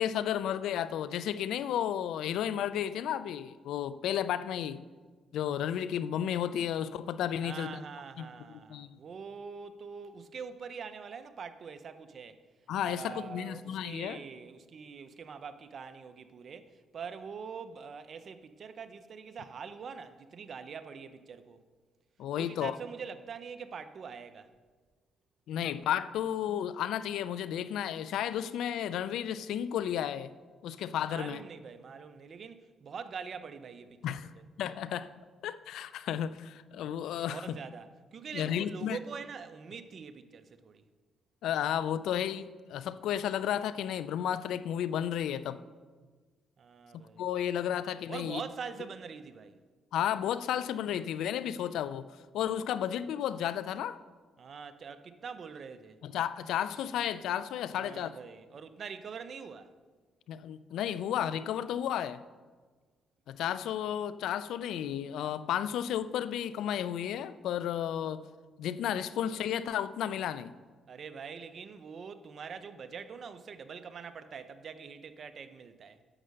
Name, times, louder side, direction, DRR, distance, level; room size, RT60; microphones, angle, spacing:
voice 1, 0.0-4.8 5.3-7.8 8.2-9.0 12.7-14.2 22.2-22.8 25.5-30.3 30.6-31.4 34.0-34.3 34.6-35.1 35.4-37.4 38.3-39.0 41.4-45.6 47.2-48.4 49.9-52.1 52.3-54.0 56.0-58.2 60.3-62.2 63.3-68.3 68.6-70.5, left 10 dB, 80° left, 0.4 m, -33 dB
voice 2, 7.4-12.4 12.8-21.6 22.4-24.5 31.1-34.0 37.3-40.8 46.6-47.2 48.1-49.6 54.4-56.0 57.8-59.7 70.9-76.0, right 6 dB, 50° right, 0.7 m, -44 dB
9.9 x 6.5 x 6.4 m
cardioid pair, 90°, 0 cm